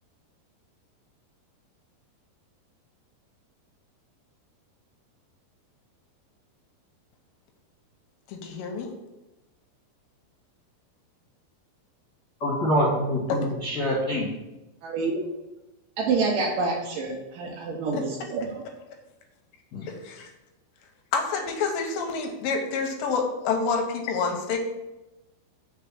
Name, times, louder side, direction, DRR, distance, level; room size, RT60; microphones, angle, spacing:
voice 1, 8.3-8.9 13.3-13.4 17.9-18.0 19.8-20.3 21.1-24.6, left 5 dB, 80° left, 3 dB, 2.1 m, -28 dB
voice 2, 12.4-14.3 19.7-19.8, equal, 45° left, -9 dB, 1.4 m, -25 dB
voice 3, 14.8-15.2 16.0-18.6, right 4 dB, 80° right, -2 dB, 1.9 m, -27 dB
5.9 x 3.7 x 5.9 m, 1.0 s
omnidirectional pair, 4.9 m